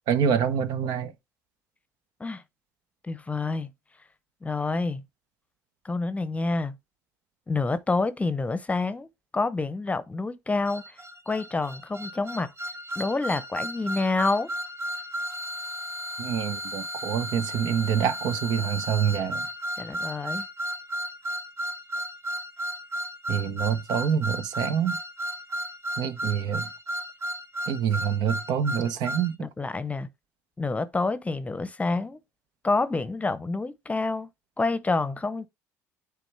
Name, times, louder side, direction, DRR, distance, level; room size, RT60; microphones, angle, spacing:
voice 1, 0.1-1.1 16.2-19.5 23.3-25.0 26.0-26.7 27.7-29.5, right 8 dB, 60° right, 0.7 m, -26 dB
voice 2, 3.0-3.7 4.4-5.0 5.8-6.8 7.5-9.1 9.3-11.0 11.3-12.5 13.0-14.5 19.8-20.4 29.4-30.1 30.6-32.2 32.6-34.3 34.6-35.5, left 3 dB, 15° left, 0.8 m, -28 dB
sound 1, 10.7-29.3, equal, 40° right, 1.3 m, -34 dB
9.2 x 3.5 x 3.3 m
hypercardioid pair, 65°, 8 cm